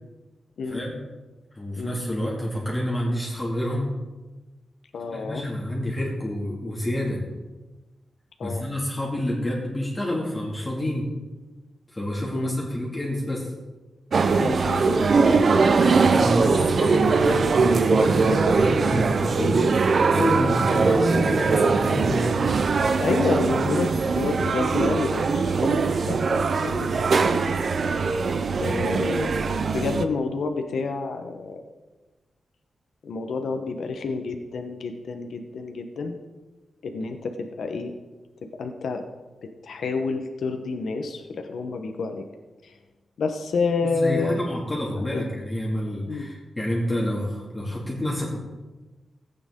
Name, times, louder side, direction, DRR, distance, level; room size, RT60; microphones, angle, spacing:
voice 1, 1.6-3.9 5.1-7.2 8.4-11.1 11.9-13.5 15.5-19.7 20.1-22.4 28.9-29.0 44.0-48.4, left 1 dB, 15° left, -4 dB, 2.4 m, -28 dB
voice 2, 4.9-5.4 8.4-8.6 12.3-12.5 14.3-15.0 15.3-15.5 23.0-26.9 28.6-29.3 29.7-31.6 33.0-36.2 36.8-37.9 38.4-39.0 39.4-42.2 42.6-42.7 43.2-44.4 45.0-45.3 46.1-46.3, left 4 dB, 80° left, 5 dB, 1.0 m, -29 dB
sound 1, 14.1-30.1, right 4 dB, 50° right, 0.6 m, -21 dB
16.0 x 8.8 x 3.7 m, 1.2 s
wide cardioid pair, 140°, 0 cm